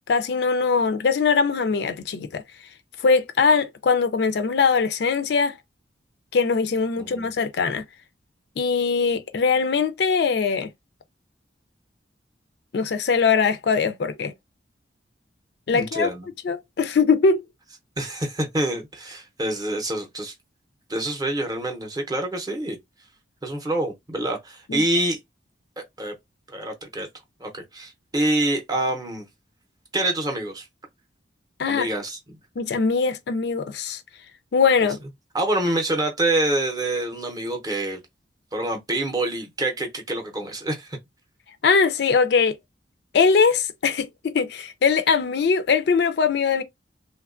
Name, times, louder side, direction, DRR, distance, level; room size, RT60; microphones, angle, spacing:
voice 1, 0.1-2.4 3.0-5.5 6.3-7.8 8.6-10.7 12.7-14.3 15.7-16.1 16.4-17.4 24.7-24.8 31.6-31.9 32.6-34.0 34.5-35.0 41.6-42.6 43.1-46.6, left 5 dB, 60° left, 0.4 m, -21 dB
voice 2, 7.0-7.3 15.7-16.3 18.0-20.3 20.9-22.8 23.4-25.2 25.8-26.2 26.5-27.1 27.4-29.3 29.9-30.7 31.7-32.4 35.3-38.0 38.5-41.0, right 1 dB, 20° right, 0.6 m, -26 dB
3.0 x 2.2 x 2.4 m
head